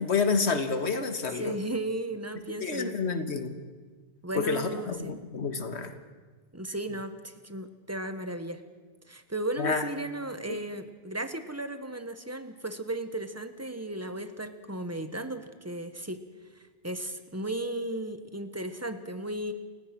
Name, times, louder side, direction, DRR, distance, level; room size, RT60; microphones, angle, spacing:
voice 1, 0.0-1.6 2.6-3.6 4.3-5.9 9.6-9.9, left 4 dB, 90° left, 8 dB, 1.8 m, -29 dB
voice 2, 1.4-3.0 4.2-5.1 6.5-8.6 9.1-16.2 16.5-19.5, right 1 dB, 15° right, 9 dB, 1.2 m, -35 dB
29.5 x 15.5 x 6.0 m, 1.4 s
omnidirectional pair, 1.1 m